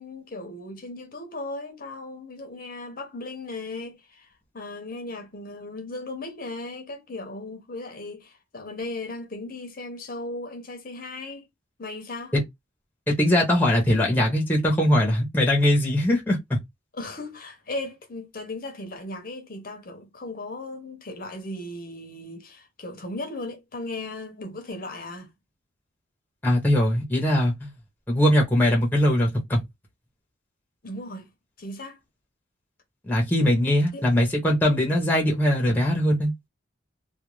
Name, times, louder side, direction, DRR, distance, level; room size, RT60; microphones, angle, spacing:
voice 1, 0.0-4.3 4.5-11.5 11.8-12.3 16.9-25.3 30.8-31.3 31.6-32.0 33.9-34.1, left 2 dB, 45° left, 0.6 m, -37 dB
voice 2, 13.1-16.6 26.4-27.7 28.1-29.6 33.0-36.3, left 1 dB, 10° left, 0.7 m, -21 dB
2.3 x 2.2 x 3.1 m
head